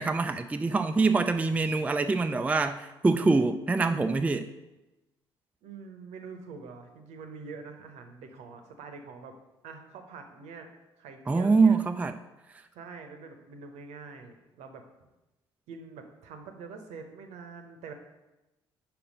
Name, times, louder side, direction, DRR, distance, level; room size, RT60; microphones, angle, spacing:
voice 1, 0.0-4.5 11.3-12.2 12.5-12.6, right 3 dB, 10° right, 8 dB, 0.3 m, -25 dB
voice 2, 5.6-9.3 9.6-10.7 11.0-11.8 12.7-14.8 15.7-17.9, right 5 dB, 65° right, 6 dB, 0.8 m, -45 dB
5.4 x 4.6 x 5.1 m, 1.0 s
figure-of-eight pair, 45°, 13 cm